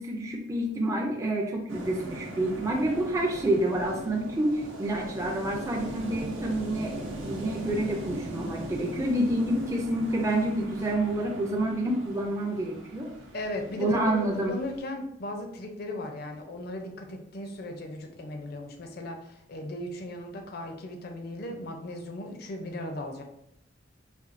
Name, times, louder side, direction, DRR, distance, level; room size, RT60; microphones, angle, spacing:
voice 1, 0.0-13.1 13.8-14.5, right 1 dB, 15° right, -1 dB, 0.4 m, -28 dB
sound 1, 1.7-14.8, right 1 dB, 80° right, 0.7 m, -40 dB
voice 2, 13.3-23.2, left 1 dB, 50° left, 4 dB, 0.5 m, -37 dB
4.2 x 2.2 x 2.5 m, 0.77 s
head